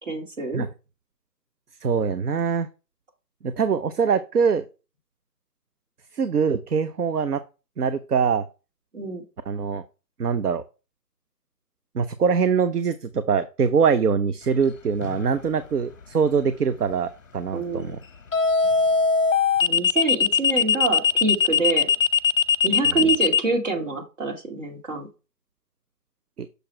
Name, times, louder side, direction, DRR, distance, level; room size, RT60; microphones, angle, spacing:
voice 1, 0.0-0.6 8.9-9.2 17.5-17.9 19.6-21.9 22.6-25.1, right 3 dB, 45° right, 2 dB, 2.2 m, -26 dB
voice 2, 1.8-2.7 3.4-4.7 6.1-7.4 7.8-8.4 9.5-9.8 10.2-10.6 11.9-18.0 22.9-23.1, right 6 dB, 65° right, 12 dB, 0.7 m, -23 dB
sound 1, 15.0-15.4 18.3-23.4, left 6 dB, 50° left, 0.6 m, -20 dB
6.6 x 4.8 x 4.4 m, 0.31 s
hypercardioid pair, 175°, 49 cm